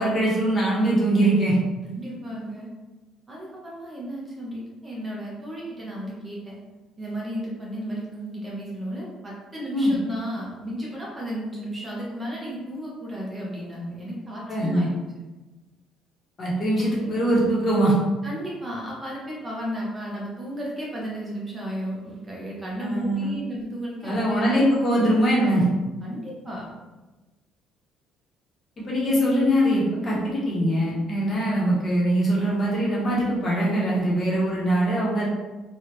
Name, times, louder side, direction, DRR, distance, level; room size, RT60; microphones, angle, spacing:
voice 1, 0.0-1.5 9.7-9.9 14.5-14.9 16.4-17.9 22.8-23.4 24.0-25.6 28.8-35.3, right 1 dB, 30° left, -5 dB, 0.9 m, -22 dB
voice 2, 1.8-2.7 3.3-6.6 7.0-14.9 17.0-17.1 18.2-24.6 25.0-25.2 26.0-26.7, equal, 20° right, -4 dB, 0.7 m, -34 dB
3.3 x 2.4 x 2.9 m, 1.1 s
cardioid pair, 140°, 0 cm